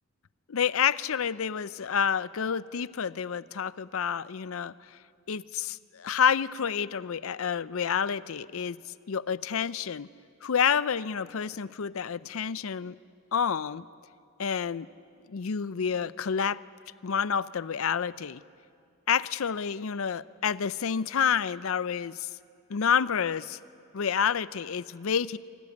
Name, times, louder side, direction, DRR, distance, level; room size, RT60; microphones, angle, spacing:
voice 1, 0.5-5.0 5.3-8.8 9.1-10.1 10.4-13.0 13.3-13.8 14.4-14.9 15.3-16.6 17.0-18.4 19.1-22.3 22.7-23.6 23.9-25.4, left 7 dB, 70° left, 17 dB, 0.5 m, -29 dB
25.0 x 17.5 x 9.6 m, 2.3 s
head